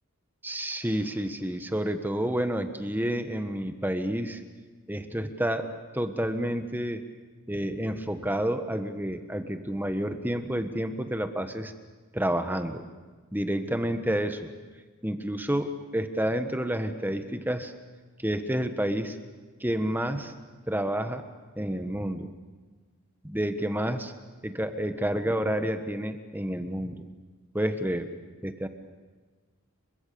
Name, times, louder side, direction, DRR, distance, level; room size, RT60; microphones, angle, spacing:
voice 1, 0.4-4.4 4.9-7.0 7.5-11.7 12.1-12.8 13.3-14.5 15.0-17.7 18.2-19.2 19.6-20.3 20.7-21.2 21.6-22.3 23.2-24.1 24.4-27.1 27.5-28.1 28.4-28.7, right 1 dB, 10° right, 8 dB, 1.3 m, -29 dB
29.5 x 24.0 x 7.0 m, 1.4 s
head